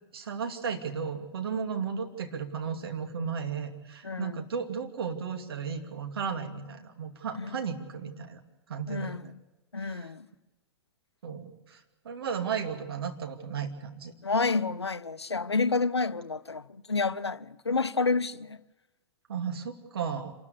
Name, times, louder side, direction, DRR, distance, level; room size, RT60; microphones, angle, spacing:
voice 1, 0.1-8.4 8.7-9.3 9.8-10.1 11.2-14.1 19.3-20.3, right 6 dB, 65° right, 2.6 m, -34 dB
voice 2, 4.0-4.4 7.4-7.5 8.9-9.3 9.7-10.3 14.2-18.6, left 4 dB, 85° left, 0.6 m, -29 dB
27.0 x 13.5 x 8.4 m
figure-of-eight pair, 100°, 13 cm